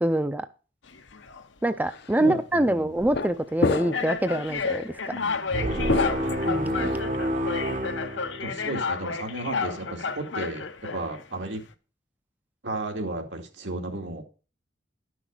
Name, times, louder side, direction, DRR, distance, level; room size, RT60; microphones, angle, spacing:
voice 1, 0.0-0.5 1.6-5.1 6.5-7.0, right 1 dB, 10° right, 11 dB, 0.5 m, -25 dB
sound 1, 0.9-1.4 2.2-2.4 3.2-3.3 3.9-11.2, left 5 dB, 90° left, 1.0 m, -32 dB
sound 2, 1.9-2.1 3.0-3.3 3.6-4.1 4.5-4.7 5.9-7.0, left 3 dB, 60° left, 0.7 m, -28 dB
voice 2, 2.2-3.0 5.1-6.4 8.4-11.6 12.6-14.2, right 2 dB, 80° right, 3 dB, 2.4 m, -34 dB
sound 3, 5.5-8.9, equal, 45° right, 1.0 m, -28 dB
12.0 x 6.3 x 6.6 m, 0.36 s
head